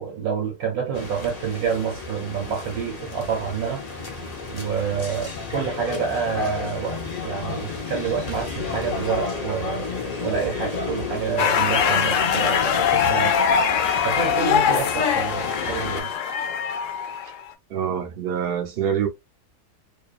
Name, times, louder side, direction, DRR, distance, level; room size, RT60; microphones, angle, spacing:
voice 1, 0.0-3.8 4.5-9.9 10.2-13.4 14.0-16.1, right 7 dB, 75° right, 1.2 m, -28 dB
sound 1, 0.9-16.0, left 4 dB, 45° left, 0.5 m, -32 dB
sound 2, 11.4-17.5, left 7 dB, 70° left, 0.8 m, -22 dB
voice 2, 17.7-19.1, right 8 dB, 55° right, 0.7 m, -25 dB
2.7 x 2.3 x 2.3 m
omnidirectional pair, 1.6 m